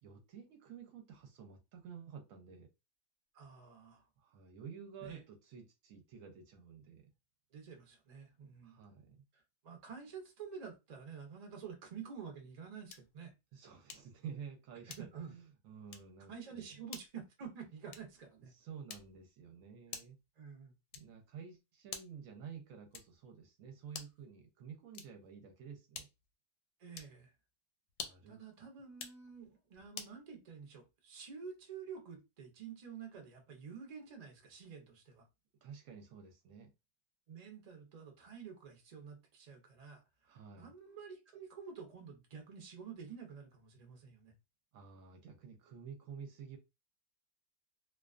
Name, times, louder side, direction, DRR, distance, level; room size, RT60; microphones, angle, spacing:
voice 1, 0.0-2.7 4.2-7.1 8.6-9.2 13.5-16.7 18.4-20.2 20.9-26.1 28.0-28.7 35.6-36.7 40.2-40.7 44.7-46.6, right 7 dB, 70° right, 0.9 m, -51 dB
voice 2, 3.3-4.1 5.0-5.2 7.5-8.8 9.3-13.3 14.9-15.3 16.3-18.5 20.4-20.7 26.8-27.3 28.0-35.3 37.3-44.3, right 6 dB, 50° right, 0.4 m, -50 dB
sound 1, 12.9-13.2 13.9-14.2 14.9-15.3 15.9-16.2 16.9-17.2 17.9-18.2 18.9-19.3 19.9-20.3 20.9-21.3 21.9-22.3 22.9-23.3 23.9-24.3 24.9-25.3 25.9-26.3 26.9-27.2 27.9-28.3 28.9-29.2 29.9-30.2, left 7 dB, 85° left, 1.1 m, -49 dB
2.4 x 2.2 x 2.3 m
omnidirectional pair, 1.6 m